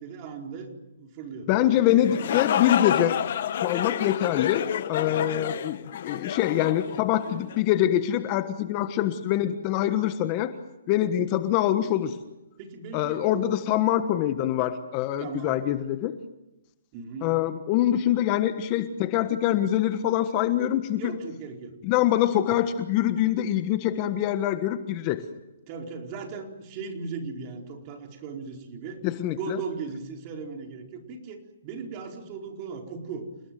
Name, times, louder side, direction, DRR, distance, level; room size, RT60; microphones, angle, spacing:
voice 1, 0.0-2.0 5.1-5.4 12.6-13.4 15.2-15.7 16.9-17.4 21.0-21.7 25.7-29.0 29.3-33.3, right 5 dB, 30° right, 2 dB, 4.5 m, -38 dB
voice 2, 1.5-3.2 3.6-5.8 6.0-10.5 10.9-12.2 12.9-16.1 17.2-21.0 21.8-25.2 29.0-29.6, left 12 dB, 30° left, 10 dB, 1.3 m, -24 dB
sound 1, 1.9-7.6, left 9 dB, 50° left, 1.4 m, -29 dB
29.0 x 19.5 x 7.8 m, 0.96 s
hypercardioid pair, 160°, 0 cm